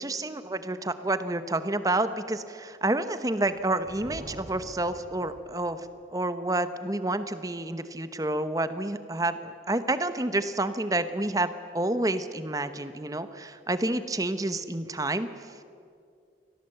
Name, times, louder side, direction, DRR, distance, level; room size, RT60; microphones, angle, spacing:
voice 1, 0.0-15.5, right 2 dB, 20° right, 11 dB, 0.9 m, -29 dB
Thunder, 3.4-6.1, equal, 35° right, 2.7 m, -46 dB
24.5 x 17.5 x 8.0 m, 2.4 s
head